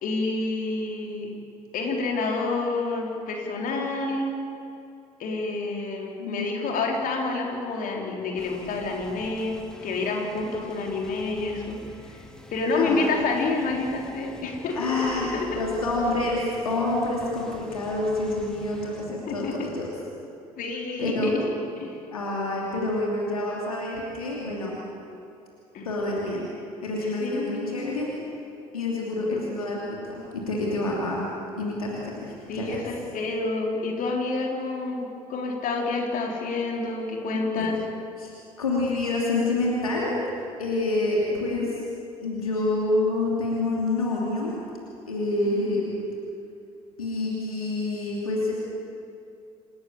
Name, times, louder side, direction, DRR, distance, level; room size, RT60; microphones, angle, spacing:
voice 1, 0.0-1.3 1.7-4.3 5.2-15.7 19.3-19.7 20.6-22.0 25.7-25.9 27.2-28.2 32.5-37.8 41.3-41.7 45.7-45.8, left 3 dB, 50° left, 0 dB, 3.8 m, -29 dB
voice 2, 6.2-6.5 12.8-13.1 14.7-19.9 21.0-21.3 22.1-24.8 25.8-26.5 26.8-28.1 28.7-31.2 31.6-32.9 37.5-37.7 38.2-38.3 38.6-40.1 40.6-41.7 42.2-44.5 45.1-46.0 47.0-48.5, left 2 dB, 80° left, -3 dB, 2.8 m, -27 dB
sound 1, 8.4-19.0, left 1 dB, 5° left, 2.9 m, -46 dB
27.0 x 14.0 x 8.7 m, 2.6 s
figure-of-eight pair, 55°, 18 cm